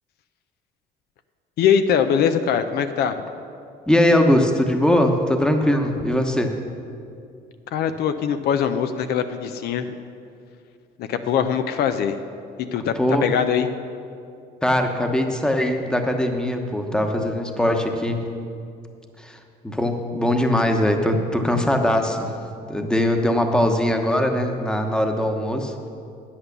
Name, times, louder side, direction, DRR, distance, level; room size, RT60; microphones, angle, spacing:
voice 1, 1.6-3.2 7.7-9.9 11.0-12.2 12.7-12.9 13.2-13.7, left 8 dB, 70° left, 9 dB, 0.6 m, -22 dB
voice 2, 3.9-6.5 13.0-13.3 14.6-18.2 19.2-19.4 19.6-22.3 22.7-25.9, left 1 dB, 5° left, 4 dB, 1.0 m, -21 dB
9.5 x 8.6 x 6.7 m, 2.5 s
cardioid pair, 110°, 17 cm